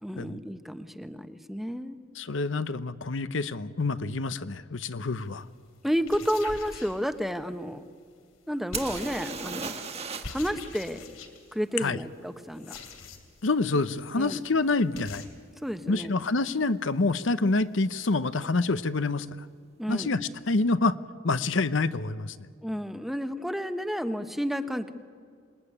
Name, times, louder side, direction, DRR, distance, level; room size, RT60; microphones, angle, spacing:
voice 1, 0.0-2.0 5.8-7.8 8.5-9.7 10.3-11.0 11.5-12.8 14.2-14.4 15.6-16.1 19.8-20.1 22.6-24.9, equal, ahead, 9 dB, 1.0 m, -31 dB
voice 2, 2.1-5.5 11.8-12.0 13.4-15.2 15.9-19.5 19.9-21.0 21.2-22.4, left 3 dB, 65° left, 14 dB, 0.8 m, -27 dB
sound 1, 5.2-5.4 5.9-7.5 8.7-9.5 10.2-11.6 12.5-13.5 13.8-13.9 14.2-14.3 14.5-14.6 15.0-15.3, left 3 dB, 85° left, 2.9 m, -43 dB
sound 2, 8.7-10.5 10.7-10.8 14.2-14.3 15.0-15.2 15.4-16.0 18.0-18.1 18.4-18.5, right 5 dB, 30° right, 1.7 m, -36 dB
27.0 x 20.5 x 10.0 m, 2.1 s
head